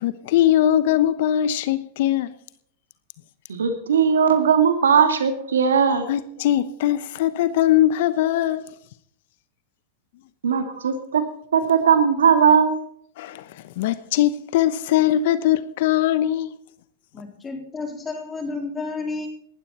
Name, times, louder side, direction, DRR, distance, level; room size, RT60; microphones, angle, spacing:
voice 1, 0.0-2.3 6.1-8.7 13.2-16.5, left 12 dB, 65° left, 0.9 m, -21 dB
voice 2, 3.5-6.1 10.4-11.2 11.5-12.7, right 7 dB, 85° right, 2.3 m, -18 dB
voice 3, 17.1-19.3, left 3 dB, 20° left, 3.8 m, -31 dB
18.5 x 12.5 x 4.3 m
hypercardioid pair, 110°, 0 cm